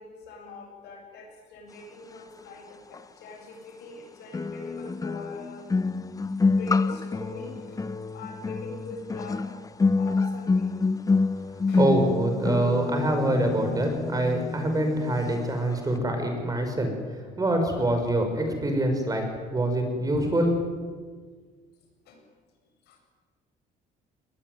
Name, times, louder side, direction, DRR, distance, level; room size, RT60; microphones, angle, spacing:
voice 1, 0.0-5.7 6.4-7.8 8.1-9.6 10.0-10.7 11.7-11.9 22.0-22.2 22.8-23.0, left 2 dB, 80° left, 2 dB, 7.9 m, -43 dB
sound 1, 2.9-3.0 4.3-15.4 15.7-16.0, left 4 dB, 20° left, 0.8 m, -27 dB
voice 2, 11.8-20.5, right 1 dB, 20° right, 5 dB, 5.8 m, -25 dB
21.5 x 20.0 x 9.4 m, 1.5 s
cardioid pair, 110°, 17 cm